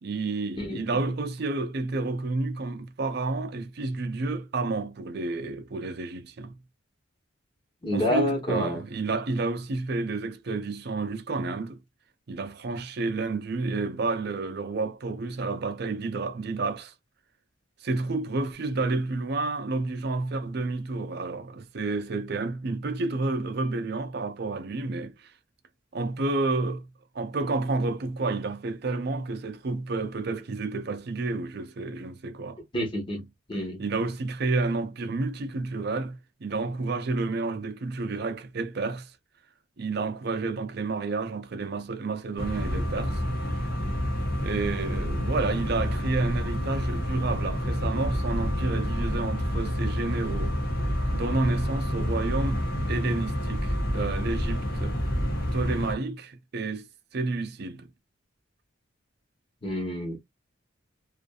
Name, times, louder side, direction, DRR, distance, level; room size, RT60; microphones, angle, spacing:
voice 1, 0.0-6.6 7.9-11.8 12.3-16.9 17.8-25.3 25.9-32.6 33.2-33.3 33.8-39.1 39.8-43.2 44.4-50.6 51.1-55.0 55.5-56.9 57.1-57.9, right 3 dB, 55° right, 0.5 m, -30 dB
voice 2, 0.6-0.9 7.8-8.8 32.7-33.2 33.5-33.8 59.6-60.2, equal, 25° left, 1.1 m, -28 dB
sound 1, 42.4-55.9, equal, 50° left, 0.9 m, -28 dB
2.5 x 2.5 x 2.3 m
head